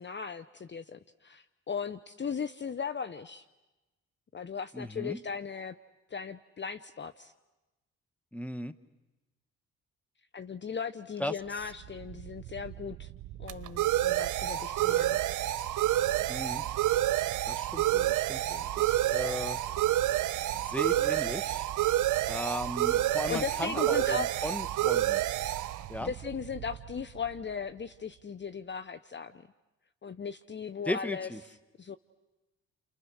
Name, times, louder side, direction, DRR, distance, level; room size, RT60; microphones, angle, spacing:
voice 1, 0.0-3.4 4.3-5.7 6.1-7.3 10.3-13.1 13.4-15.2 23.3-24.3 26.0-29.4 30.0-32.0, left 6 dB, 35° left, 12 dB, 0.9 m, -38 dB
voice 2, 4.7-5.2 8.3-8.7 11.2-11.3 16.3-16.6 17.4-19.6 20.5-21.7 22.3-25.2 25.9-26.1 30.9-31.4, left 1 dB, 5° left, 12 dB, 1.6 m, -36 dB
sound 1, 11.8-27.3, right 14 dB, 70° right, 0.9 m, -29 dB
29.5 x 29.5 x 6.4 m, 1.1 s
supercardioid pair, 55°, 32 cm